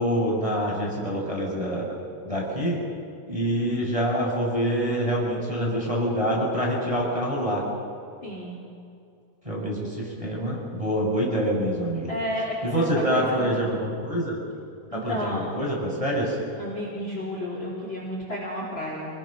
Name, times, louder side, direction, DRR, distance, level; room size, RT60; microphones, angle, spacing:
voice 1, 0.0-1.9 2.2-2.8 3.3-7.7 9.4-12.1 12.6-14.4 14.9-16.4, equal, 5° right, -3 dB, 5.7 m, -26 dB
voice 2, 8.2-8.6 12.1-13.7 14.9-15.4 16.6-19.1, left 1 dB, 30° left, -3 dB, 4.2 m, -32 dB
29.0 x 21.0 x 6.4 m, 2.4 s
omnidirectional pair, 5.0 m